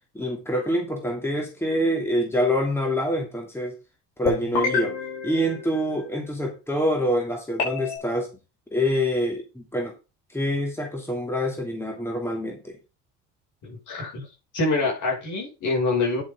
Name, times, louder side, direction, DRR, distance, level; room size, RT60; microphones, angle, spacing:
voice 1, 0.1-3.8 4.2-5.0 5.2-8.3 8.7-9.9 10.3-12.8, equal, 5° left, 1 dB, 2.8 m, -26 dB
sound 1, 4.2-6.4 7.6-8.0, left 4 dB, 85° left, 5.3 m, -29 dB
voice 2, 13.6-14.3 14.5-16.2, left 3 dB, 55° left, 0 dB, 6.1 m, -25 dB
9.7 x 7.6 x 3.7 m, 0.30 s
supercardioid pair, 85°, 36 cm